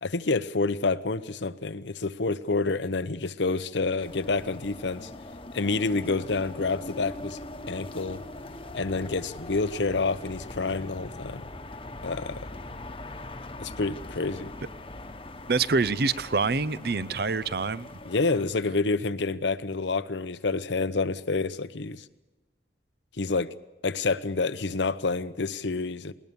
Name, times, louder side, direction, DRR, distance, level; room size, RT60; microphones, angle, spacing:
voice 1, 0.0-5.1 5.5-7.4 7.7-8.2 8.7-11.4 12.0-12.4 13.6-14.5 18.0-22.1 23.2-23.6 23.8-26.1, left 3 dB, 75° left, 0.8 m, -28 dB
sound 1, 4.0-18.4, left 1 dB, 30° left, 1.1 m, -41 dB
voice 2, 15.5-17.9, right 4 dB, 55° right, 0.6 m, -26 dB
20.0 x 19.5 x 7.0 m
head